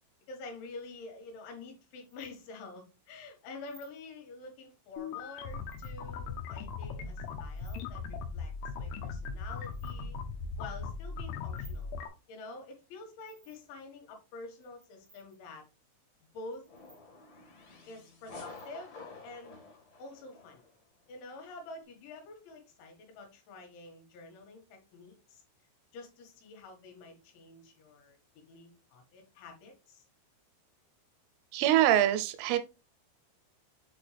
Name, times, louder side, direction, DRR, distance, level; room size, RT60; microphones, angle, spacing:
voice 1, 0.3-8.5 8.8-10.2 10.6-11.9 12.3-15.6 16.3-16.7 17.9-19.6 20.0-20.6 21.1-25.4 25.9-28.2 28.5-30.0, left 3 dB, 70° left, 3.8 m, -48 dB
sound 1, 2.0-2.3 3.6-4.0 5.4-5.9 7.3-7.8 9.3-10.0 11.0-11.8 13.2-13.8 14.5-15.4 16.5-17.0 17.7-17.9 18.3-18.7, right 4 dB, 60° right, 0.9 m, -60 dB
sound 2, 5.0-12.1, left 5 dB, 90° left, 3.6 m, -39 dB
sound 3, 16.7-20.7, left 3 dB, 55° left, 2.0 m, -50 dB
voice 2, 31.5-32.6, right 12 dB, 85° right, 3.3 m, -24 dB
7.7 x 4.4 x 3.3 m
omnidirectional pair, 5.8 m